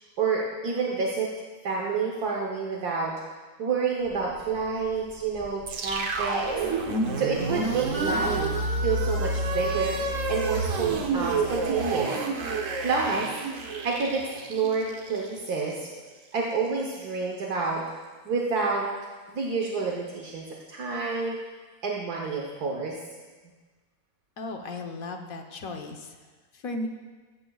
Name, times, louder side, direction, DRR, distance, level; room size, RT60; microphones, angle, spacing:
voice 1, 0.2-1.3 1.6-3.1 3.6-6.5 6.8-8.5 8.8-10.0 10.3-12.1 12.8-13.3 13.8-15.9 16.3-17.8 18.3-18.9 19.3-21.4 21.8-23.0, right 4 dB, 75° right, -1 dB, 1.7 m, -28 dB
sound 1, 4.0-11.8, left 1 dB, 15° left, 3.2 m, -41 dB
sound 2, 5.7-15.9, right 3 dB, 55° right, 1.3 m, -29 dB
voice 2, 24.4-26.2 26.5-26.9, left 2 dB, 60° left, 4 dB, 1.5 m, -35 dB
15.5 x 14.5 x 2.4 m, 1.4 s
omnidirectional pair, 1.7 m